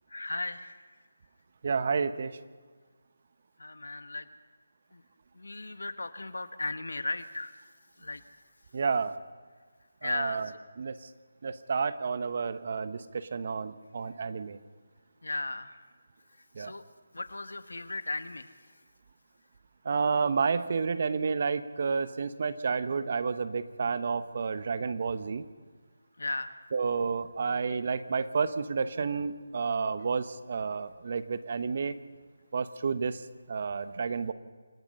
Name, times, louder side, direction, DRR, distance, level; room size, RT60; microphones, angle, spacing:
voice 1, 0.1-0.8 3.6-4.3 4.9-5.0 5.3-7.5 8.0-8.2 10.0-10.5 15.2-15.8 16.6-16.8 17.1-18.5 26.2-26.6, left 2 dB, 85° left, 11 dB, 1.5 m, -36 dB
voice 2, 1.6-2.4 8.7-9.2 10.0-10.5 10.8-11.0 11.4-14.6 16.5-16.7 19.8-25.4 26.7-31.9 32.5-33.2 33.5-34.3, right 5 dB, 45° right, 13 dB, 1.1 m, -30 dB
28.0 x 18.0 x 5.6 m, 1.5 s
figure-of-eight pair, 165°, 0 cm